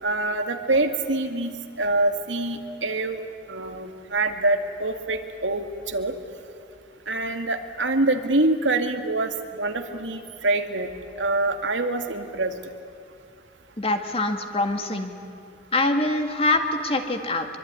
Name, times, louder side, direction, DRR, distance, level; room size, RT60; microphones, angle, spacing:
voice 1, 0.0-3.2 3.5-6.2 7.1-12.6, right 2 dB, 85° right, 6 dB, 2.1 m, -25 dB
voice 2, 13.8-15.2 15.7-17.5, left 2 dB, 30° left, 5 dB, 2.1 m, -24 dB
24.0 x 24.0 x 9.8 m, 2.5 s
head